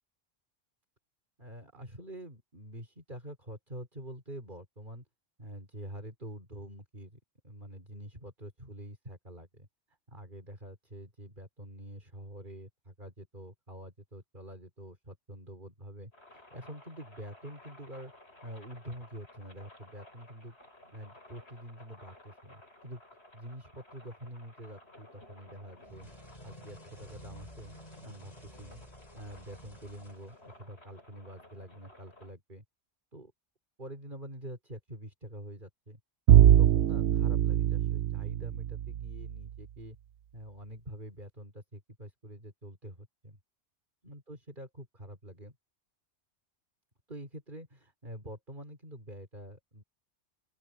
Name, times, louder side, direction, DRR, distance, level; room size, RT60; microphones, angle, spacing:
voice 1, 1.4-5.1 5.4-9.7 10.1-18.1 18.4-20.6 20.9-23.0 23.3-26.1 26.4-28.8 29.1-32.6 33.1-33.3 33.8-36.0 36.4-40.0 40.3-43.4 44.0-45.6 47.1-49.8, right 1 dB, 45° right, 5.2 m, -46 dB
sound 1, 16.1-32.3, left 1 dB, 65° left, 7.4 m, -56 dB
sound 2, 25.8-30.7, equal, 35° left, 5.0 m, -52 dB
Bowed string instrument, 36.3-39.3, right 11 dB, 80° right, 0.9 m, -22 dB
open air
omnidirectional pair, 1.2 m